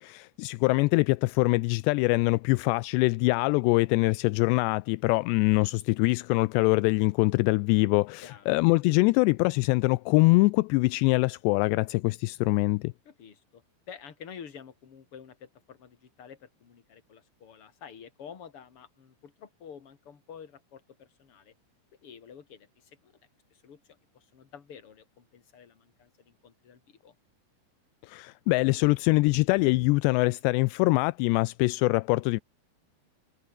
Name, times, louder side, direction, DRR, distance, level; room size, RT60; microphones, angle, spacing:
voice 1, 0.0-12.9 28.0-32.4, left 24 dB, 85° left, 2.5 m, -24 dB
voice 2, 8.2-8.6 13.0-21.5 22.0-23.2 23.5-27.2, left 7 dB, 35° left, 2.8 m, -49 dB
omnidirectional pair, 5.3 m